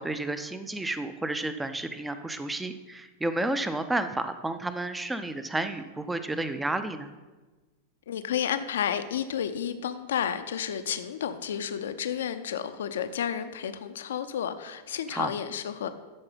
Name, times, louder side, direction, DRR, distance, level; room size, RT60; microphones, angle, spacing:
voice 1, 0.0-7.1 15.1-15.3, right 2 dB, 10° right, 10 dB, 0.6 m, -31 dB
voice 2, 8.1-15.9, left 9 dB, 60° left, 11 dB, 0.6 m, -31 dB
13.0 x 4.8 x 5.5 m, 1.2 s
figure-of-eight pair, 90°, 0 cm